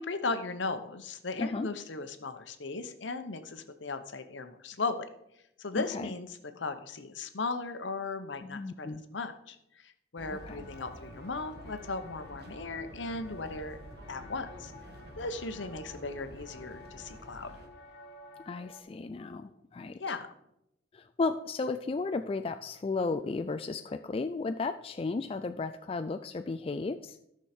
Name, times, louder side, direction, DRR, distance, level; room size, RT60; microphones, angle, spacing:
voice 1, 0.0-5.1 5.6-6.3 6.6-13.8 14.1-14.7 15.2-17.5 20.0-20.3, left 3 dB, 70° left, 9 dB, 0.9 m, -37 dB
voice 2, 5.7-6.1 8.4-9.0 10.3-10.7 18.5-20.1 20.9-27.2, left 3 dB, 30° left, 8 dB, 0.3 m, -34 dB
sound 1, 10.2-18.8, left 2 dB, 55° left, 1.3 m, -52 dB
sound 2, 10.2-17.7, right 1 dB, 55° right, 1.4 m, -49 dB
13.0 x 6.3 x 4.3 m, 0.80 s
head